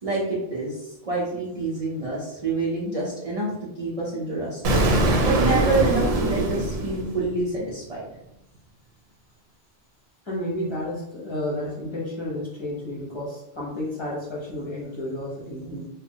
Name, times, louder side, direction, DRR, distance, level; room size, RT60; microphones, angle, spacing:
voice 1, 0.0-4.8 5.2-8.0, right 3 dB, 40° right, -6 dB, 0.6 m, -27 dB
Explosion, 4.6-7.6, right 2 dB, 80° right, 0.8 m, -22 dB
voice 2, 10.2-15.9, left 1 dB, 30° left, -6 dB, 0.7 m, -31 dB
3.1 x 2.1 x 2.7 m, 0.83 s
omnidirectional pair, 1.0 m